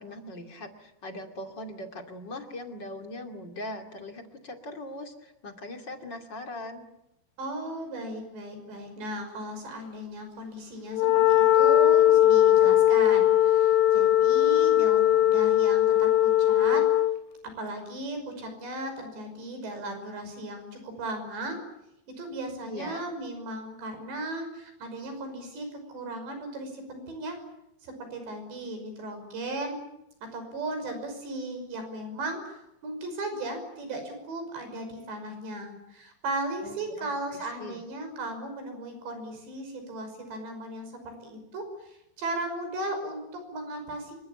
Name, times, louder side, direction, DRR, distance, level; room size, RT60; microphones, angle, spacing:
voice 1, 0.0-6.9 22.7-23.0 36.6-37.8, left 1 dB, 30° left, 5 dB, 2.5 m, -40 dB
voice 2, 7.4-16.8 17.6-21.6 22.2-27.4 27.8-29.8 30.3-44.1, right 2 dB, 90° right, 7 dB, 8.0 m, -36 dB
Wind instrument woodwind instrument, 10.9-17.2, left 12 dB, 85° left, 3.6 m, -20 dB
26.5 x 24.5 x 8.8 m, 0.86 s
omnidirectional pair, 4.9 m